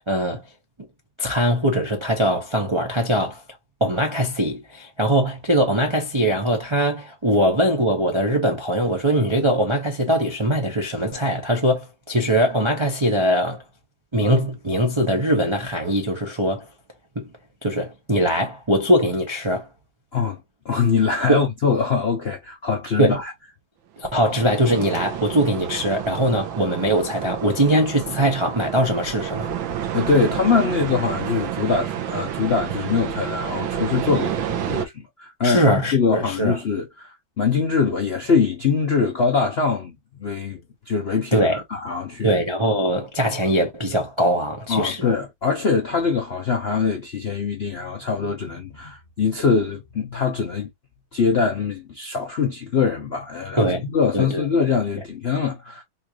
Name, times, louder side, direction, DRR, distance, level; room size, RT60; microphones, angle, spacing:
voice 1, 0.1-0.4 1.2-3.4 3.8-13.6 14.1-16.7 17.2-17.3 17.6-19.7 21.3-21.4 23.0-23.2 24.0-29.5 35.4-36.6 41.3-41.6 42.2-45.1 53.6-53.8 54.1-54.4, equal, 40° right, 0.4 m, -21 dB
voice 2, 20.6-23.3 29.9-39.9 40.2-42.3 44.7-50.7 51.1-55.8, left 5 dB, 60° left, 0.6 m, -23 dB
sound 1, 24.1-34.9, right 10 dB, 85° right, 1.6 m, -30 dB
4.3 x 2.5 x 2.8 m
omnidirectional pair, 2.1 m